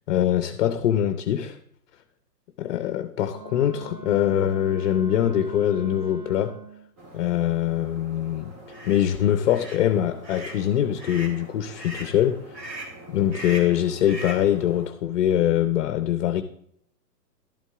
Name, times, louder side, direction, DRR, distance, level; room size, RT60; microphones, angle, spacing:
voice 1, 0.1-1.6 2.6-6.6 7.1-8.5 8.8-12.6 13.1-16.4, left 11 dB, 45° left, 0.8 m, -23 dB
Wind instrument woodwind instrument, 3.3-6.9, right 7 dB, 65° right, 1.3 m, -43 dB
sound 1, 7.0-14.9, right 1 dB, 30° right, 1.9 m, -46 dB
sound 2, 8.7-9.0 9.5-9.8 10.2-10.6 11.0-11.4 11.8-12.1 12.5-13.0 13.3-13.8 14.1-14.5, right 1 dB, 90° right, 2.9 m, -38 dB
12.0 x 8.2 x 3.6 m
hypercardioid pair, 130°, 49 cm